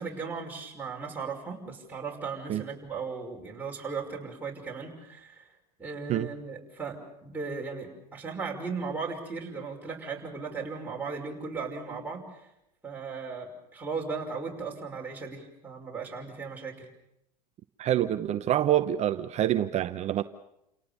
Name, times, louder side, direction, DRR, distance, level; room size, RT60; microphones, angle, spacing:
voice 1, 0.0-5.5 5.8-12.5 12.8-16.9, right 4 dB, 10° right, -2 dB, 5.7 m, -37 dB
voice 2, 17.8-20.2, right 12 dB, 35° right, 11 dB, 0.8 m, -26 dB
29.5 x 18.0 x 7.1 m, 0.84 s
hypercardioid pair, 115°, 21 cm